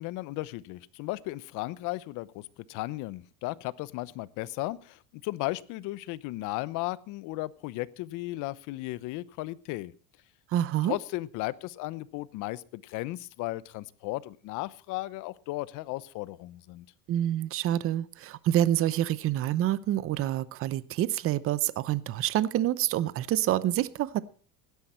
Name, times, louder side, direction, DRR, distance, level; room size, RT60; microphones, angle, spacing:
voice 1, 0.0-9.9 10.8-16.9, left 19 dB, 60° left, 19 dB, 0.9 m, -35 dB
voice 2, 10.5-11.0 17.1-24.2, right 12 dB, 40° right, 17 dB, 0.8 m, -27 dB
16.5 x 12.0 x 4.4 m, 0.39 s
cardioid pair, 135°, 35 cm